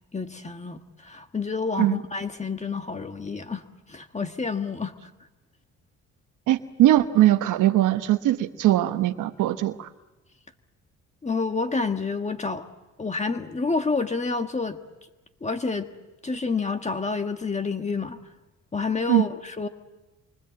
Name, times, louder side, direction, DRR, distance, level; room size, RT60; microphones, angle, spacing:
voice 1, 0.1-4.9 11.2-12.7 13.0-14.8 15.4-15.9 16.2-18.2 18.7-19.7, left 4 dB, 25° left, 6 dB, 1.5 m, -29 dB
voice 2, 6.5-9.9 19.1-19.2, right 14 dB, 85° right, 8 dB, 1.1 m, -20 dB
27.5 x 24.5 x 7.7 m, 1.1 s
cardioid pair, 90°, 30 cm